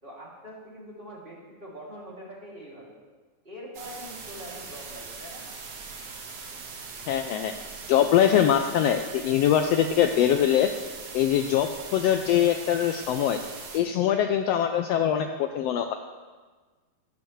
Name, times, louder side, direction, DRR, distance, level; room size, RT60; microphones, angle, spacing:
voice 1, 0.0-3.0 3.4-5.4, equal, 20° right, -5 dB, 2.5 m, -43 dB
sound 1, 3.7-13.8, right 4 dB, 60° right, 2.3 m, -41 dB
voice 2, 7.1-7.5 7.9-10.7 11.1-13.4 13.7-15.9, left 10 dB, 85° left, 6 dB, 1.4 m, -23 dB
15.5 x 13.0 x 3.2 m, 1.4 s
omnidirectional pair, 3.5 m